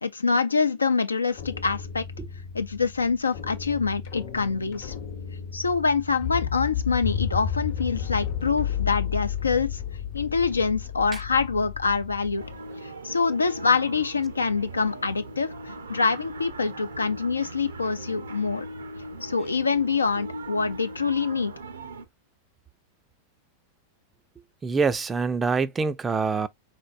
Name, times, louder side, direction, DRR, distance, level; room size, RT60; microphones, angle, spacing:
voice 1, 0.0-2.0 2.5-4.9 5.5-9.8 10.1-12.4 12.8-18.7 19.2-21.5, left 4 dB, 75° left, 0.5 m, -25 dB
sound 1, 1.3-12.6, left 8 dB, 50° left, 0.9 m, -33 dB
sound 2, 12.4-22.1, right 2 dB, 70° right, 0.6 m, -39 dB
voice 2, 24.6-26.5, right 4 dB, 15° right, 0.4 m, -25 dB
3.8 x 3.4 x 2.4 m
figure-of-eight pair, 90°, 0 cm